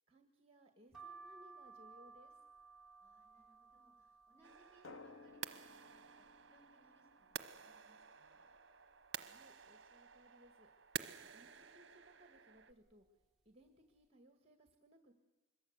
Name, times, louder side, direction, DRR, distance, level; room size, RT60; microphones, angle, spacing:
voice 1, 0.1-2.4 9.2-11.0 11.3-15.1, equal, 30° right, 6 dB, 1.9 m, -65 dB
sound 1, 0.9-6.6 7.1-7.8 8.2-8.3 8.5-9.6 10.1-10.5 11.3-11.6 12.4-12.6 12.9-13.1, right 4 dB, ahead, 2.5 m, -60 dB
voice 2, 3.0-8.5, right 1 dB, 15° left, -2 dB, 7.5 m, -71 dB
sound 2, 4.4-12.7, right 8 dB, 55° right, 1.0 m, -51 dB
Drum, 4.8-7.6, left 3 dB, 80° left, 1.1 m, -58 dB
25.5 x 22.5 x 8.1 m, 1.1 s
head